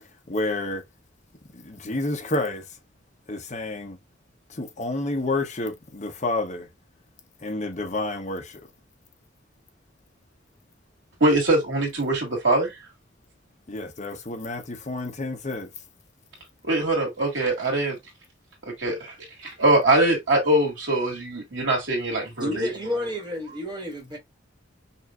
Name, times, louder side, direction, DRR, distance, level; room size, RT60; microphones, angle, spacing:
voice 1, 0.3-0.8 1.5-2.6 3.3-4.0 4.5-6.7 7.4-8.6 13.7-15.7, left 2 dB, 40° left, 0.9 m, -29 dB
voice 2, 11.2-12.7 16.6-18.0 18.7-22.7, right 1 dB, 80° right, 2.0 m, -23 dB
voice 3, 22.4-24.2, equal, 25° right, 1.5 m, -30 dB
5.4 x 2.6 x 2.4 m
head